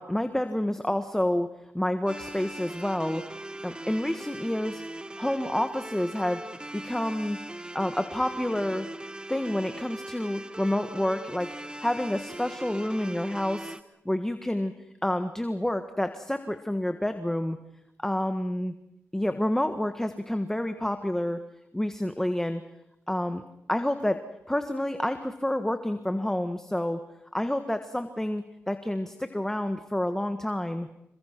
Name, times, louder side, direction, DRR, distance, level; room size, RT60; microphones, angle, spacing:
voice 1, 0.0-3.3 3.6-4.8 5.2-6.4 6.7-7.4 7.7-8.9 9.3-11.5 11.8-13.7 14.0-14.7 15.0-17.6 18.0-18.7 19.1-21.4 21.7-22.6 23.1-23.4 23.7-27.0 27.3-30.9, left 1 dB, 10° left, 8 dB, 1.5 m, -29 dB
sound 1, 2.1-13.8, right 1 dB, 20° right, 1.2 m, -40 dB
27.5 x 23.0 x 6.0 m, 0.83 s
cardioid pair, 75°, 5 cm